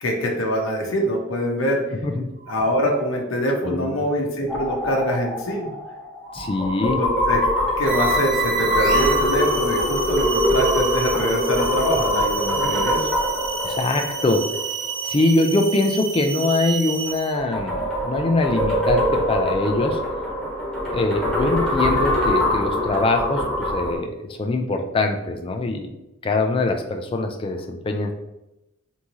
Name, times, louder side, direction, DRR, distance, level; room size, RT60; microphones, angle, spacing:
voice 1, 0.0-2.0 2.5-5.7 7.0-7.4 7.8-13.1, equal, 70° left, 0 dB, 0.7 m, -24 dB
sound 1, 2.4-2.9 6.2-9.0, right 1 dB, 80° right, 1.5 m, -36 dB
voice 2, 3.6-4.0 6.3-7.0 12.6-12.7 13.6-14.4 15.0-20.0 20.9-25.9 26.2-28.1, left 2 dB, 25° left, 4 dB, 0.3 m, -23 dB
sound 2, 4.5-15.1 17.1-24.0, left 1 dB, ahead, 1.0 m, -23 dB
sound 3, 7.9-17.4, right 6 dB, 55° right, 0.7 m, -30 dB
3.6 x 2.7 x 3.0 m, 0.92 s
head